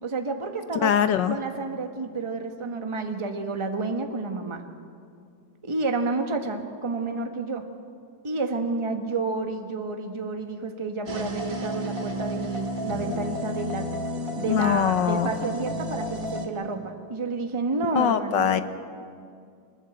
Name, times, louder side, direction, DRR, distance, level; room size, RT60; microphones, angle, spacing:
voice 1, 0.0-0.9 1.3-4.6 5.6-7.6 8.2-13.9 14.4-18.5, right 3 dB, 15° right, 5 dB, 1.3 m, -30 dB
voice 2, 0.8-1.3 14.5-15.3 17.9-18.6, left 9 dB, 70° left, 10 dB, 1.5 m, -22 dB
sound 1, 11.1-16.5, equal, 45° right, 2.3 m, -31 dB
24.5 x 20.5 x 8.0 m, 2.3 s
omnidirectional pair, 2.1 m